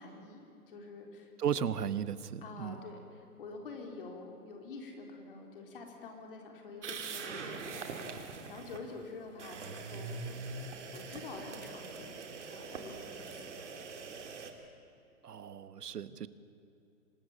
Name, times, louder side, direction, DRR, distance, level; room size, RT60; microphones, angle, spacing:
voice 1, 0.0-1.3 2.4-12.1 12.5-13.7, left 3 dB, 35° left, 3 dB, 3.7 m, -48 dB
voice 2, 1.4-2.8 15.2-16.3, right 8 dB, 85° right, 14 dB, 1.3 m, -35 dB
sound 1, 6.8-8.8 9.4-14.5, right 4 dB, 50° right, 2.7 m, -43 dB
26.0 x 19.5 x 8.7 m, 2.8 s
hypercardioid pair, 175°, 46 cm